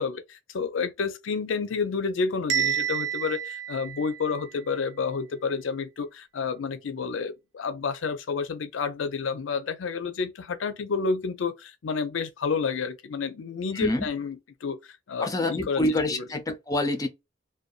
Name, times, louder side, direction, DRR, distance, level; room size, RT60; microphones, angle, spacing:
voice 1, 0.0-14.8 15.1-15.8 16.1-16.3, left 5 dB, 80° left, 0.5 m, -30 dB
Bell, 2.5-4.5, right 9 dB, 90° right, 0.6 m, -29 dB
voice 2, 13.7-14.1 15.2-17.1, left 1 dB, 20° left, 0.5 m, -26 dB
2.6 x 2.2 x 2.4 m
head